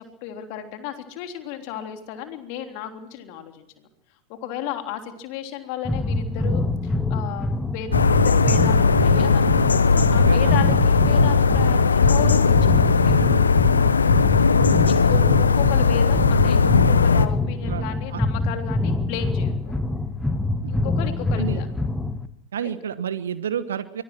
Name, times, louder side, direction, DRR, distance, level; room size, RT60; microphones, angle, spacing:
voice 1, 0.0-3.9 4.3-13.5 14.6-19.8 20.7-21.7 22.6-22.7, left 10 dB, 45° left, 5 dB, 3.3 m, -34 dB
sound 1, 5.8-22.3, left 2 dB, 5° left, 1.6 m, -25 dB
sound 2, 7.9-17.3, left 5 dB, 75° left, 1.2 m, -18 dB
voice 2, 10.2-10.6 14.1-14.5 17.6-18.2 20.6-20.8 21.4-21.6 22.5-24.0, right 8 dB, 65° right, 13 dB, 1.2 m, -30 dB
25.0 x 21.5 x 6.2 m, 0.75 s
figure-of-eight pair, 90°, 0 cm